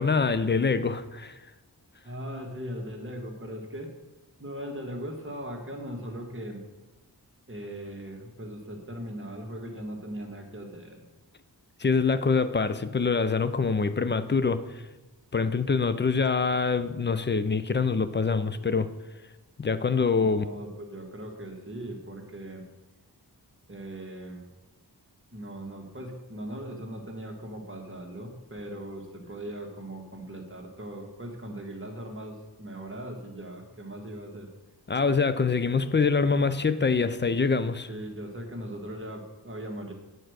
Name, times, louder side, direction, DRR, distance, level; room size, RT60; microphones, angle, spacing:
voice 1, 0.0-1.4 11.8-14.8 15.3-18.9 19.6-20.4 34.9-37.9, left 4 dB, 30° left, 12 dB, 0.4 m, -25 dB
voice 2, 2.0-3.9 4.4-6.6 7.5-11.0 20.2-22.6 23.7-24.5 25.3-34.5 37.9-39.9, right 1 dB, 30° right, 2 dB, 1.4 m, -39 dB
8.7 x 4.6 x 6.4 m, 1.1 s
wide cardioid pair, 95°, 40 cm